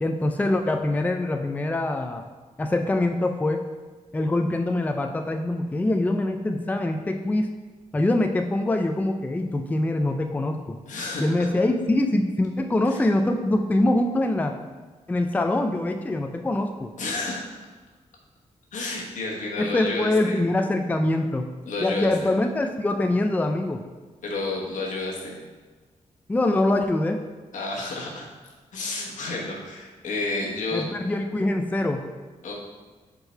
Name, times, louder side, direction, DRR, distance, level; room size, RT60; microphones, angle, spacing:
voice 1, 0.0-2.2 2.6-3.7 4.1-7.5 7.9-10.8 11.2-14.6 15.1-16.9 19.6-21.5 21.8-23.8 26.3-27.2 30.7-32.0, left 1 dB, 10° left, 5 dB, 0.4 m, -24 dB
voice 2, 10.9-11.3 12.8-13.0 17.0-17.4 18.7-20.4 21.7-22.3 24.2-25.4 27.5-28.3 28.7-30.9 32.4-32.5, left 2 dB, 80° left, -2 dB, 1.3 m, -30 dB
5.4 x 3.8 x 4.5 m, 1.3 s
cardioid pair, 90°, 13 cm